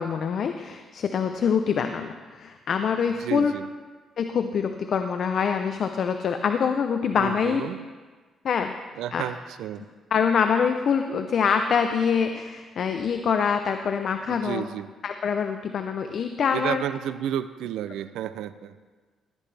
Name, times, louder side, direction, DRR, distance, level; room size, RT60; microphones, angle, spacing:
voice 1, 0.0-3.5 4.2-7.6 8.4-8.7 9.1-9.2 10.1-14.7 15.0-16.8, left 6 dB, 60° left, 7 dB, 0.6 m, -25 dB
voice 2, 3.2-3.7 7.2-7.9 9.0-9.9 14.3-14.9 16.5-18.8, right 11 dB, 85° right, 13 dB, 0.4 m, -32 dB
17.0 x 10.5 x 3.4 m, 1.4 s
cardioid pair, 90°, 0 cm